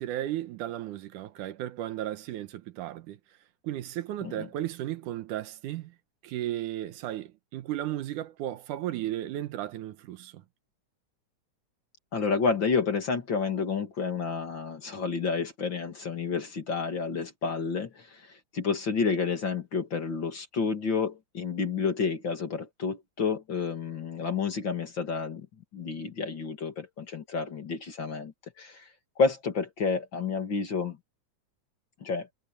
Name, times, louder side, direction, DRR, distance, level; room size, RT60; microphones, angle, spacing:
voice 1, 0.0-3.2 3.6-5.9 6.2-10.4, right 13 dB, 80° right, 2.5 m, -34 dB
voice 2, 12.1-25.5 25.7-28.9 29.2-31.0 32.0-32.3, left 5 dB, 40° left, 2.6 m, -30 dB
omnidirectional pair, 3.6 m